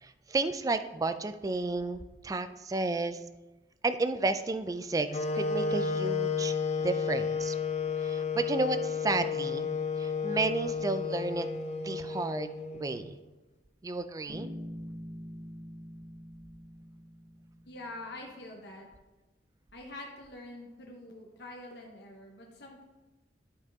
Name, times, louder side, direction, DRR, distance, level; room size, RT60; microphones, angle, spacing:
voice 1, 0.0-3.2 3.8-7.6 8.0-9.7 10.0-11.5 11.8-13.2 13.8-14.5, right 3 dB, 20° right, 11 dB, 0.3 m, -32 dB
sound 1, 5.1-13.1, left 5 dB, 40° left, 0.5 m, -32 dB
Bass guitar, 14.3-18.1, equal, 40° right, 1.4 m, -44 dB
voice 2, 17.7-18.9 19.7-22.8, left 2 dB, 70° left, 0 dB, 1.1 m, -45 dB
11.0 x 4.7 x 3.5 m, 1.1 s
head